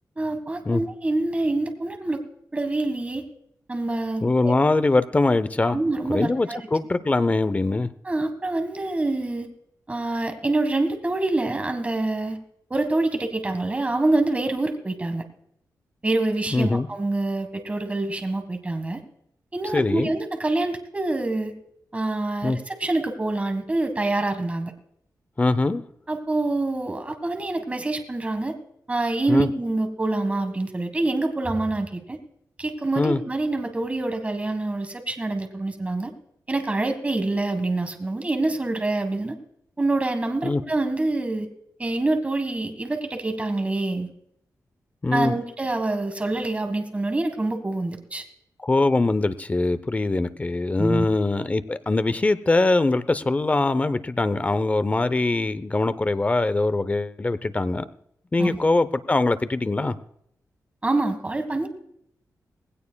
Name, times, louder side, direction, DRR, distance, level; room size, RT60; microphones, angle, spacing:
voice 1, 0.2-2.2 2.5-3.2 3.7-4.5 5.6-6.6 8.0-9.5 9.9-12.4 12.7-15.2 16.0-19.0 19.5-21.5 21.9-24.7 26.1-28.5 28.9-32.2 32.6-36.1 36.5-39.4 39.8-41.5 41.8-44.1 45.1-48.2 50.8-51.1 58.4-58.6 60.8-61.7, right 2 dB, 20° right, 7 dB, 1.6 m, -26 dB
voice 2, 4.2-5.8 6.1-7.9 16.5-16.9 19.7-20.1 22.4-22.6 25.4-25.8 29.3-29.5 33.0-33.2 40.4-40.6 45.0-45.3 48.6-57.9 58.3-60.0, left 2 dB, 20° left, 14 dB, 0.6 m, -22 dB
19.5 x 17.0 x 2.3 m, 0.73 s
wide cardioid pair, 115°, 6 cm